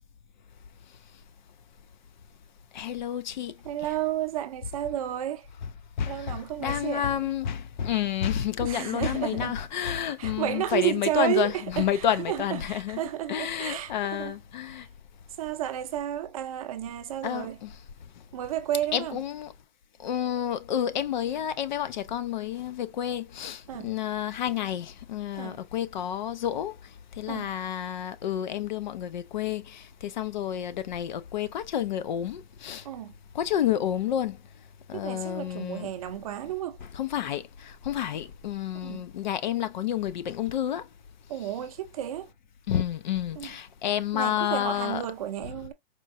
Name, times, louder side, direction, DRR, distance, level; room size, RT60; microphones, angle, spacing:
voice 1, 2.7-3.6 6.0-13.0 13.3-14.9 17.2-17.7 18.9-19.5 20.0-32.9 33.3-34.4 34.9-35.9 36.9-40.9 42.7-45.0, left 10 dB, 50° left, 0.5 m, -30 dB
voice 2, 3.6-5.5 6.1-7.1 8.6-9.6 10.2-14.3 14.7-14.9 15.4-17.6 18.3-19.2 23.7-23.9 25.3-25.6 27.3-27.5 32.8-33.1 34.9-36.8 38.8-39.1 41.3-42.3 43.4-43.5 44.1-45.7, right 12 dB, 40° right, 0.6 m, -32 dB
4.4 x 2.3 x 2.6 m
hypercardioid pair, 160°, 29 cm